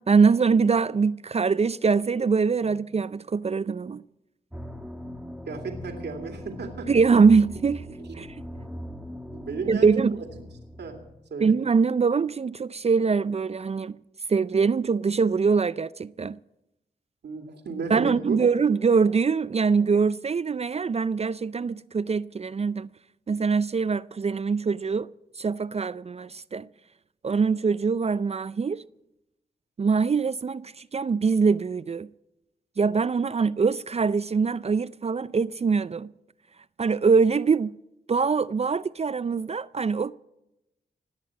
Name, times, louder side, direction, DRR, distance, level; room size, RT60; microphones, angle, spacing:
voice 1, 0.1-4.0 6.9-8.3 9.7-10.2 11.4-14.0 14.3-16.4 17.9-22.9 23.3-25.1 25.4-26.7 27.2-28.8 29.8-32.1 32.8-36.1 36.8-37.7 38.1-40.1, right 5 dB, 35° right, 0.4 m, -23 dB
sound 1, 4.5-11.1, equal, 5° right, 1.7 m, -40 dB
voice 2, 5.5-6.9 8.0-8.1 9.3-9.9 10.8-11.0 11.3-11.5 17.2-18.4, right 4 dB, 80° right, 2.3 m, -34 dB
19.0 x 7.5 x 8.7 m
cardioid pair, 45°, 17 cm